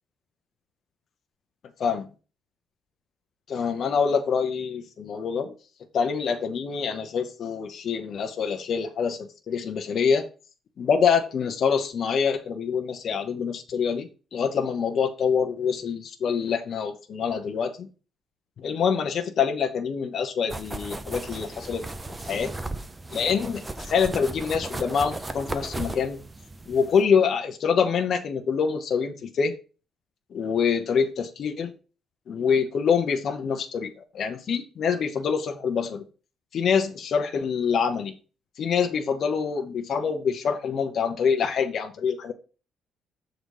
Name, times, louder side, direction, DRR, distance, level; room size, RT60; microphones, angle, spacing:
voice 1, 3.5-5.5 5.9-10.3 10.8-17.9 18.6-21.8 22.2-22.5 23.1-26.2 26.7-29.5 30.3-31.7 32.3-36.0 36.5-38.2 38.6-42.3, left 6 dB, 50° left, 5 dB, 0.8 m, -25 dB
sound 1, 20.5-27.0, right 2 dB, 15° right, 0.5 m, -36 dB
6.7 x 3.9 x 4.8 m, 0.35 s
cardioid pair, 150°, 0 cm